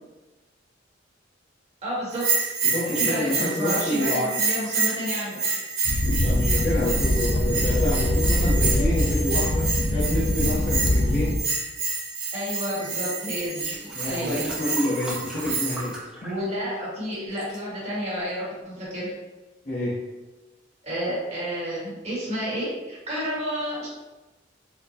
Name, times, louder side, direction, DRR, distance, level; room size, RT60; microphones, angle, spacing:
voice 1, 1.8-2.5 2.9-5.4 12.3-13.7 14.1-14.5 16.2-19.1 20.8-23.9, equal, 35° right, -7 dB, 1.4 m, -30 dB
Bell, 2.1-15.9, right 4 dB, 85° right, 1.1 m, -28 dB
voice 2, 2.6-4.3 6.0-9.6 9.9-11.4 13.9-16.3 19.6-20.0, left 1 dB, 40° left, -10 dB, 0.8 m, -28 dB
sound 1, 5.8-11.4, left 1 dB, 55° left, 0.4 m, -23 dB
sound 2, 13.4-16.8 17.1-17.6 18.3-18.4, right 1 dB, 5° right, 0.7 m, -40 dB
4.3 x 2.2 x 2.8 m, 1.1 s
head